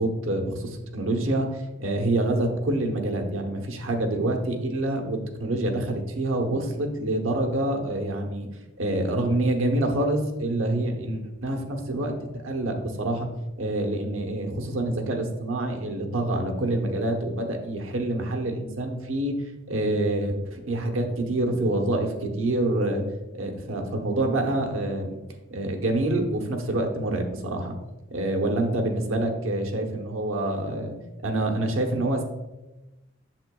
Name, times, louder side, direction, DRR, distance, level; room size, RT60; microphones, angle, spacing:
voice 1, 0.0-8.5 8.8-12.1 12.4-13.3 13.6-19.3 19.7-23.0 23.3-25.2 25.5-27.7 28.1-30.9 31.2-32.2, right 1 dB, 85° right, 3 dB, 1.0 m, -26 dB
7.6 x 6.7 x 2.3 m, 1.0 s
head